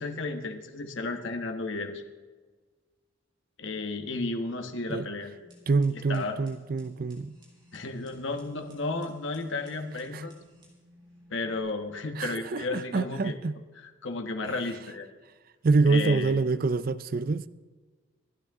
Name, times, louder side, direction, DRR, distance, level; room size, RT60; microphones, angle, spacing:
voice 1, 0.0-2.0 3.6-5.3 6.1-6.4 7.7-10.3 11.3-13.4 14.0-15.1 15.9-16.4, left 3 dB, 65° left, 1.3 m, -33 dB
sound 1, 5.3-11.6, equal, 25° right, 3.7 m, -57 dB
voice 2, 5.7-7.4 10.1-10.2 12.2-13.6 15.6-17.5, right 3 dB, 45° right, 0.4 m, -26 dB
26.5 x 9.4 x 3.6 m
head